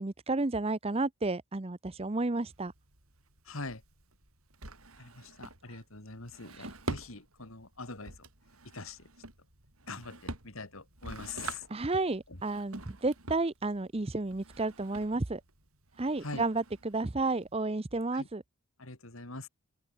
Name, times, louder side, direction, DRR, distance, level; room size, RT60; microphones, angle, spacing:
voice 1, 0.0-2.7 5.7-5.8 6.5-6.7 11.7-15.4 16.0-18.4, right 2 dB, 25° right, 0.7 m, -32 dB
Drawer open or close, 2.5-17.7, right 2 dB, 85° right, 6.7 m, -46 dB
voice 2, 3.4-3.8 5.0-8.3 8.7-9.1 9.9-11.6 12.3-12.4 16.2-16.4 18.1-18.3 18.8-19.5, left 3 dB, 70° left, 3.4 m, -43 dB
open air
head